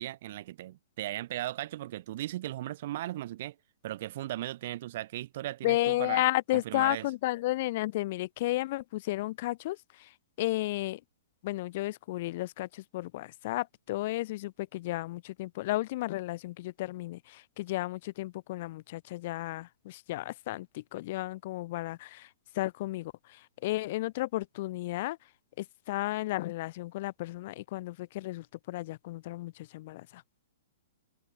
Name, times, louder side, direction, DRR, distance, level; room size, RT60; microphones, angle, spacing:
voice 1, 0.0-3.5 3.8-6.2 6.5-7.1, right 14 dB, 40° right, 1.1 m, -37 dB
voice 2, 5.6-10.1 10.4-11.0 11.4-22.3 22.5-25.2 25.6-30.2, left 17 dB, 35° left, 0.4 m, -33 dB
hypercardioid pair, 180°, 0 cm